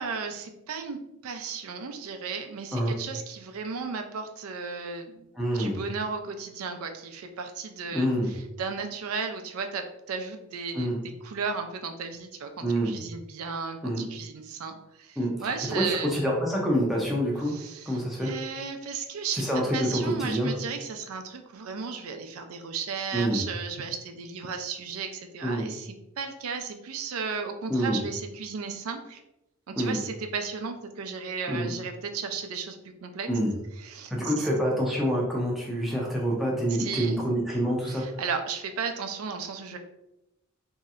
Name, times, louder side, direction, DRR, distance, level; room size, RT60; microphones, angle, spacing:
voice 1, 0.0-5.3 5.5-10.9 11.2-16.2 17.5-19.4 19.7-29.2 29.7-33.3 33.8-34.5 36.8-37.2 37.9-39.8, right 5 dB, 80° right, 6 dB, 0.4 m, -35 dB
voice 2, 5.4-5.8 7.9-8.3 10.7-11.0 12.6-12.9 13.8-14.0 15.2-17.6 17.9-18.3 19.3-20.5 23.1-23.4 25.4-25.7 27.7-28.0 29.8-30.0 31.5-31.7 33.3-33.5 34.1-38.0, equal, ahead, -4 dB, 0.5 m, -27 dB
3.1 x 2.7 x 2.4 m, 0.88 s
head